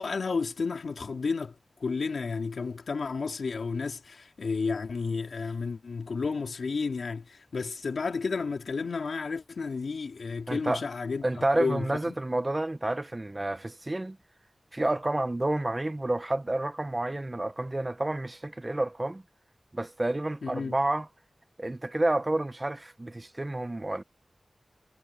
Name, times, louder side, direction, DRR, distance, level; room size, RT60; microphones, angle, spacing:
voice 1, 0.0-11.2 11.5-12.2 20.4-20.8, left 4 dB, 80° left, 3.7 m, -32 dB
voice 2, 10.5-10.8 11.2-14.2 14.7-19.2 19.7-21.1 21.6-24.0, right 2 dB, 25° right, 1.0 m, -29 dB
wide cardioid pair, 100°, 0 cm